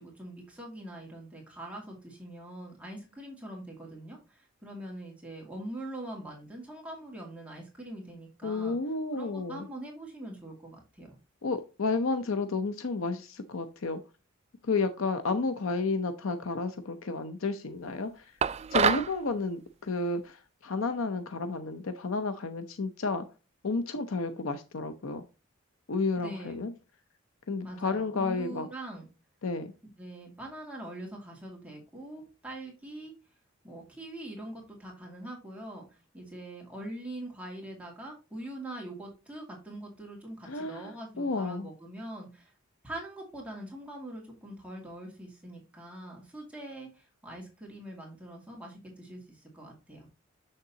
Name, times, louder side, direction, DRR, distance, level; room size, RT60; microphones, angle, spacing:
voice 1, 0.0-8.8 9.1-11.2 26.2-26.7 27.6-29.0 30.0-33.1 33.6-42.5 42.8-50.1, right 1 dB, 5° right, -2 dB, 2.2 m, -43 dB
voice 2, 8.4-9.7 11.4-14.0 14.6-18.4 18.7-23.3 23.6-25.2 25.9-26.7 27.5-28.7 29.4-29.7 40.4-41.7, left 3 dB, 70° left, 9 dB, 0.7 m, -31 dB
sound 1, 18.4-19.1, right 7 dB, 30° right, 0.3 m, -26 dB
7.2 x 6.5 x 2.8 m, 0.30 s
head